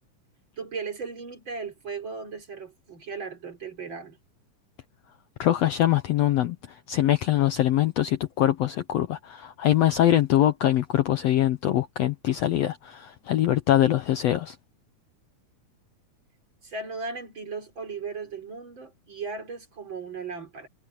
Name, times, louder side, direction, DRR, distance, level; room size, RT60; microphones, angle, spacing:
voice 1, 0.6-4.2 16.6-20.7, right 4 dB, 35° right, 3.9 m, -36 dB
voice 2, 5.4-14.5, left 12 dB, 85° left, 1.4 m, -23 dB
omnidirectional pair, 4.0 m